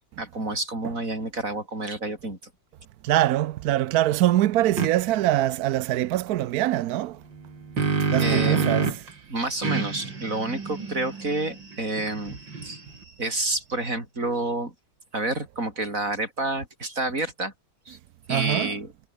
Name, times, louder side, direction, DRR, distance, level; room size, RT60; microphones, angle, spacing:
voice 1, 0.2-2.4 8.2-8.8 9.3-14.7 15.1-17.5 17.9-18.0 18.3-18.9, right 2 dB, 45° right, 6.1 m, -29 dB
voice 2, 3.0-7.2 8.0-9.0 18.3-18.7, right 14 dB, 70° right, 1.0 m, -23 dB
sound 1, 4.8-4.9 7.3-9.1 9.6-13.0, right 4 dB, 85° right, 4.0 m, -28 dB
omnidirectional pair, 2.0 m